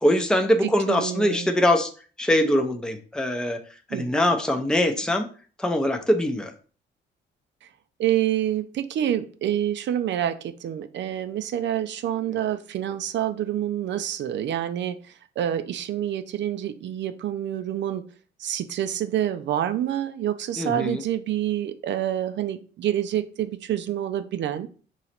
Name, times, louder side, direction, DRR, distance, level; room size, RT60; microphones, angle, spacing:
voice 1, 0.0-1.9 2.2-3.6 3.9-5.3 5.6-6.5 20.6-21.0, left 1 dB, 5° left, 5 dB, 0.6 m, -22 dB
voice 2, 0.6-1.5 3.9-4.1 7.6-7.7 8.0-18.0 18.4-24.7, right 11 dB, 65° right, 9 dB, 0.5 m, -27 dB
3.9 x 3.0 x 4.3 m, 0.39 s
cardioid pair, 90°, 20 cm